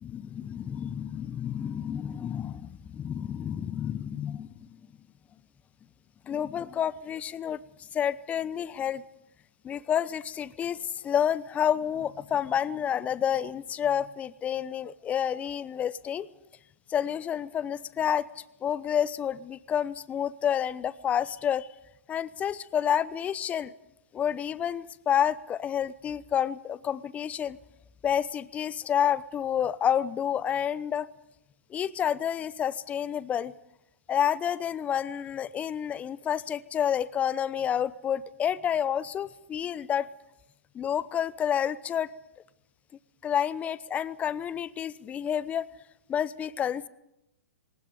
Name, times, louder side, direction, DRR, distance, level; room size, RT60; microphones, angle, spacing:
voice 1, 0.0-4.5 6.3-7.6 7.9-9.0 9.6-16.3 16.9-18.3 18.6-21.7 22.1-23.7 24.1-27.6 28.0-31.1 31.7-33.5 34.1-40.1 40.7-42.1 43.2-45.7 46.1-46.9, left 9 dB, 15° left, 18 dB, 0.8 m, -29 dB
20.0 x 19.0 x 9.5 m, 0.86 s
hypercardioid pair, 125°, 8 cm